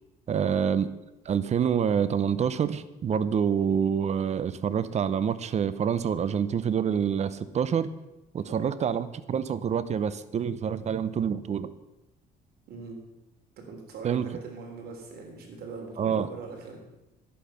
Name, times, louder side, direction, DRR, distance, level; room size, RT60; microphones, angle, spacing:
voice 1, 0.3-0.9 1.3-7.9 8.3-11.7 14.0-14.3 16.0-16.3, right 7 dB, 40° right, 15 dB, 0.7 m, -27 dB
voice 2, 12.7-13.0 13.6-16.8, right 4 dB, 65° right, 1 dB, 3.5 m, -41 dB
11.0 x 8.5 x 5.8 m, 0.95 s
cardioid pair, 110°, 17 cm